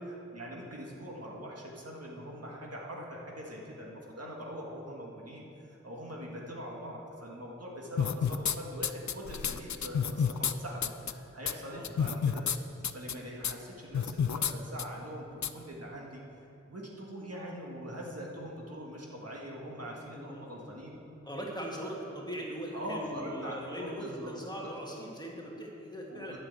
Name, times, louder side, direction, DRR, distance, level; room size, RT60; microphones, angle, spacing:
voice 1, 0.3-5.5 5.8-16.2 16.7-21.0 22.7-24.3 24.6-24.7 26.1-26.4, equal, 55° right, -2 dB, 1.8 m, -42 dB
sound 1, 8.0-8.6 8.8-10.5 10.8-11.1 11.5-11.6 11.8-12.6 12.8-13.1 13.4-13.5 13.9-14.5 14.8-14.9 15.4-15.5, left 7 dB, 70° left, 0.5 m, -29 dB
voice 2, 20.2-20.5 21.2-26.4, equal, 15° left, -2 dB, 1.7 m, -40 dB
9.3 x 6.5 x 8.1 m, 2.9 s
wide cardioid pair, 60°, 29 cm